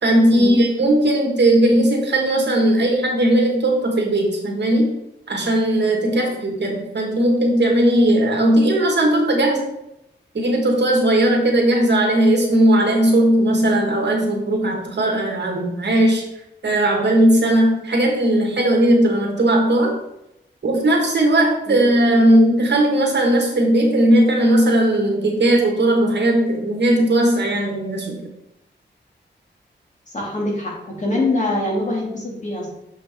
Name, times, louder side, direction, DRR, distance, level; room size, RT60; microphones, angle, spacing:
voice 1, 0.0-5.0 5.3-9.7 10.3-16.2 16.6-20.0 20.6-28.2, right 1 dB, 65° right, 1 dB, 1.7 m, -17 dB
voice 2, 30.1-32.7, left 2 dB, 40° left, -3 dB, 2.4 m, -24 dB
6.7 x 5.6 x 3.6 m, 0.84 s
wide cardioid pair, 105°, 19 cm